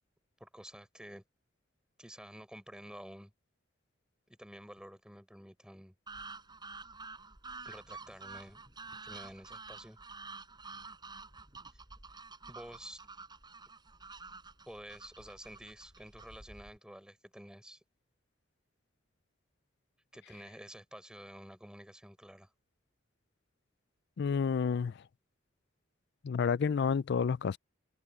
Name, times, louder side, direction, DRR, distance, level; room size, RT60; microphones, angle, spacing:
voice 1, 0.4-1.2 2.0-3.3 4.3-5.9 7.6-8.6 9.0-10.0 11.7-11.8 12.5-13.1 14.7-17.8 20.1-22.5, equal, 5° right, 4.7 m, -50 dB
sound 1, 6.1-16.8, right 4 dB, 25° right, 5.1 m, -49 dB
voice 2, 24.2-25.0 26.2-27.6, left 6 dB, 60° left, 0.4 m, -30 dB
head